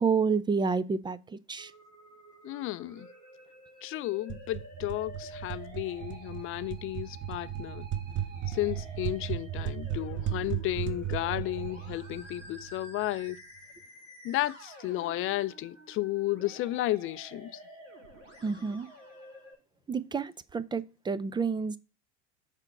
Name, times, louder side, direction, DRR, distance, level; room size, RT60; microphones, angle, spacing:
voice 1, 0.0-1.7 18.4-18.9 19.9-21.8, right 5 dB, 15° right, 0.4 m, -29 dB
Musical instrument, 1.6-19.5, right 2 dB, 90° right, 3.0 m, -50 dB
voice 2, 2.4-3.1 3.8-7.9 8.5-13.4 14.2-17.5, left 15 dB, 35° left, 0.5 m, -33 dB
sound 1, 4.3-13.0, right 10 dB, 30° right, 0.8 m, -36 dB
6.7 x 4.4 x 6.0 m
hypercardioid pair, 80°, 37 cm